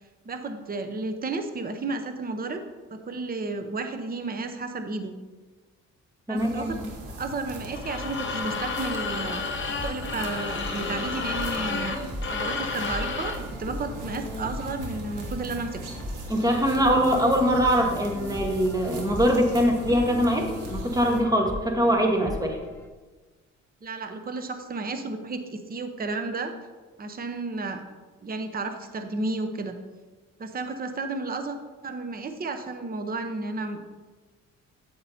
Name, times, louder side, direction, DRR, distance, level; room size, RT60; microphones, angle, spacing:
voice 1, 0.2-2.6 2.9-5.1 6.3-6.8 7.0-12.0 12.3-15.8 23.8-26.5 27.0-27.8 28.2-29.8 30.4-31.6 31.8-33.9, right 3 dB, 30° right, 7 dB, 0.8 m, -32 dB
voice 2, 6.3-6.7 16.3-22.6, equal, 10° right, 2 dB, 1.4 m, -23 dB
sound 1, 6.4-21.2, right 1 dB, 85° right, 1.5 m, -39 dB
sound 2, 7.7-13.5, left 4 dB, 40° left, 1.1 m, -31 dB
sound 3, 9.7-22.9, left 1 dB, 10° left, 0.6 m, -39 dB
8.5 x 8.4 x 2.8 m, 1.3 s
cardioid pair, 90°, 30 cm